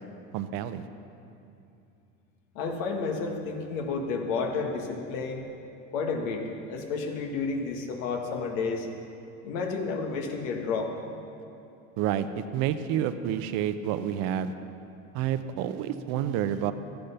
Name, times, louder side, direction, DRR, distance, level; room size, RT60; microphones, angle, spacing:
voice 1, 0.3-0.9 12.0-14.5 15.1-16.7, right 10 dB, 65° right, 11 dB, 0.8 m, -29 dB
voice 2, 2.6-5.5 5.9-8.9 9.4-10.9, left 4 dB, 80° left, 2 dB, 1.7 m, -31 dB
13.0 x 10.5 x 5.7 m, 2.7 s
supercardioid pair, 95°, 38 cm